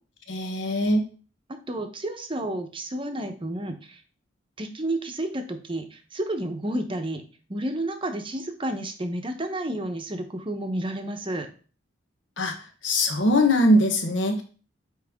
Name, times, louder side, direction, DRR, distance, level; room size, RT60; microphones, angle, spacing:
voice 1, 0.3-1.0 12.4-12.5 12.8-14.4, left 1 dB, 70° left, 4 dB, 1.1 m, -21 dB
voice 2, 1.5-4.0 4.6-7.2 7.5-11.5, right 1 dB, 25° right, 5 dB, 0.8 m, -31 dB
8.8 x 3.2 x 3.6 m, 0.39 s
head